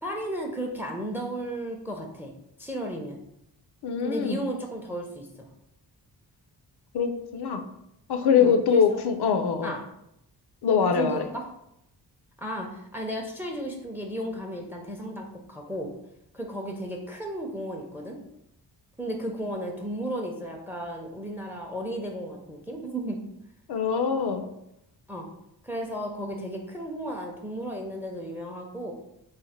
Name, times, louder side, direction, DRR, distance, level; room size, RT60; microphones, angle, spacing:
voice 1, 0.0-2.3 2.6-3.2 4.0-5.5 8.4-9.0 9.6-9.8 11.0-11.4 12.4-15.9 16.3-18.2 19.0-23.2 25.1-25.3 25.6-28.9, right 1 dB, 5° right, 2 dB, 0.5 m, -34 dB
voice 2, 3.8-4.4 6.9-7.6 8.1-9.7 10.6-11.3 23.7-24.5, left 6 dB, 70° left, 8 dB, 0.5 m, -23 dB
3.2 x 2.1 x 4.1 m, 0.80 s
cardioid pair, 85°, 40 cm